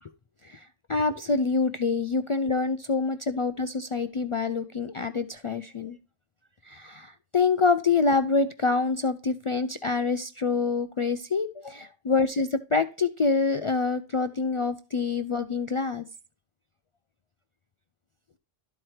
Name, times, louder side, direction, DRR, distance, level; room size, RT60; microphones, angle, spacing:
voice 1, 0.4-6.0 6.6-16.0, left 4 dB, 60° left, 9 dB, 0.3 m, -26 dB
12.5 x 4.5 x 3.2 m, 0.35 s
omnidirectional pair, 1.1 m